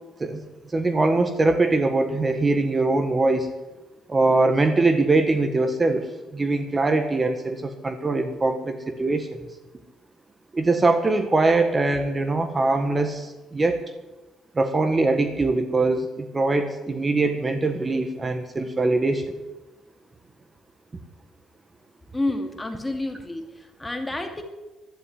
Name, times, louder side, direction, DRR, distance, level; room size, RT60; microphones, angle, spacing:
voice 1, 0.7-3.5 4.1-9.4 10.5-13.8 14.5-19.3, right 2 dB, 25° right, 8 dB, 1.5 m, -22 dB
voice 2, 22.1-24.4, left 2 dB, 15° left, 5 dB, 2.5 m, -29 dB
12.0 x 10.5 x 9.9 m, 1.1 s
cardioid pair, 90°, 0 cm